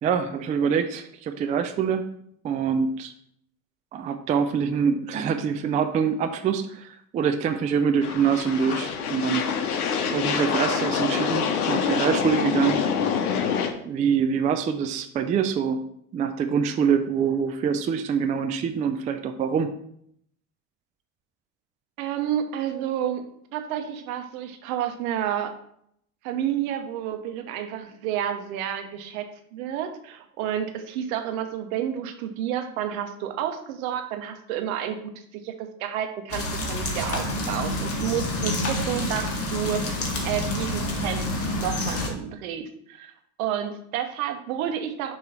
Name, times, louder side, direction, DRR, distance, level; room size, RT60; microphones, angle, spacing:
voice 1, 0.0-2.1 2.4-3.1 3.9-9.4 10.1-12.8 13.8-15.8 16.1-19.7, right 6 dB, 20° right, 8 dB, 0.3 m, -25 dB
sound 1, 8.0-13.7, left 7 dB, 75° left, 0.9 m, -26 dB
voice 2, 22.0-25.5 26.2-29.3 29.5-41.3 41.5-43.1 43.4-45.1, right 10 dB, 65° right, 6 dB, 1.0 m, -30 dB
sound 2, 36.3-42.1, left 1 dB, 30° left, 1.7 m, -28 dB
6.5 x 3.1 x 5.5 m, 0.69 s
hypercardioid pair, 75°, 45 cm